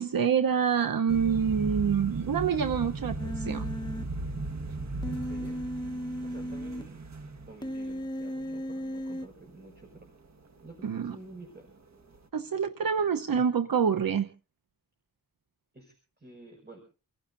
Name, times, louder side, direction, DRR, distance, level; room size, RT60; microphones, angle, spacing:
voice 1, 0.0-3.7 10.8-11.2 12.3-14.3, right 7 dB, 85° right, 9 dB, 1.0 m, -27 dB
sound 1, 1.1-10.4 10.7-11.1 11.3-11.7 12.0-12.2, right 3 dB, 55° right, 1.6 m, -37 dB
Human voice, 3.2-4.0 5.0-6.8 7.6-9.3, equal, 10° left, 1.1 m, -35 dB
voice 2, 5.1-5.6 6.2-7.0 7.5-10.1 10.6-11.7 15.7-16.8, right 2 dB, 30° right, 3 dB, 5.9 m, -49 dB
29.5 x 15.5 x 2.6 m, 0.37 s
wide cardioid pair, 90°, 34 cm